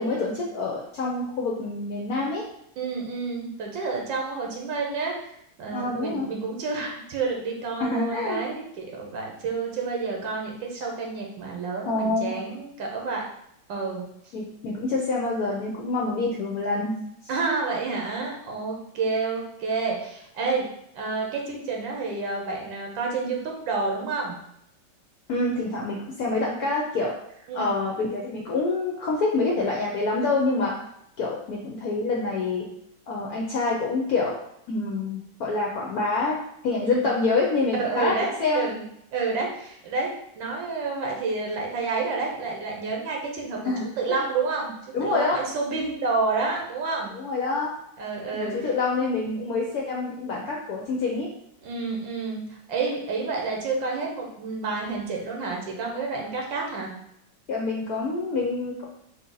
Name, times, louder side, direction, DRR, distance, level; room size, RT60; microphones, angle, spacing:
voice 1, 0.0-2.4 5.7-6.3 7.8-8.4 11.9-12.4 14.3-17.0 25.3-27.1 27.5-30.8 31.2-32.7 33.1-34.4 34.7-38.7 43.6-44.2 44.9-45.4 47.1-47.7 48.3-51.3 57.5-58.8, left 3 dB, 65° left, -2 dB, 0.9 m, -26 dB
voice 2, 2.8-5.1 5.6-13.2 13.7-14.0 17.3-20.7 20.9-24.4 27.5-27.8 36.8-37.1 37.8-38.8 39.1-44.7 45.0-47.1 48.0-48.6 51.6-56.9, right 4 dB, 85° right, 0 dB, 1.6 m, -29 dB
3.8 x 2.8 x 3.8 m, 0.75 s
omnidirectional pair, 2.0 m